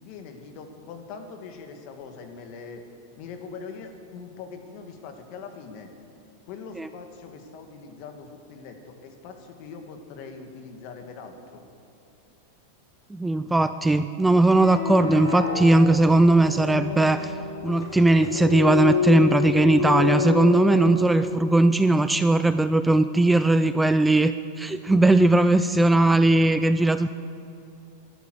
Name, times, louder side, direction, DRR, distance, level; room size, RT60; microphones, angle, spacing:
voice 1, 0.0-2.8 3.2-5.9 6.5-11.6, left 5 dB, 50° left, 5 dB, 2.1 m, -42 dB
voice 2, 13.1-17.3 17.6-24.3 24.6-27.1, right 2 dB, 5° right, 11 dB, 0.4 m, -19 dB
sound 1, 14.4-21.4, left 5 dB, 75° left, 2.6 m, -28 dB
13.0 x 12.5 x 7.9 m, 2.7 s
supercardioid pair, 135°, 0 cm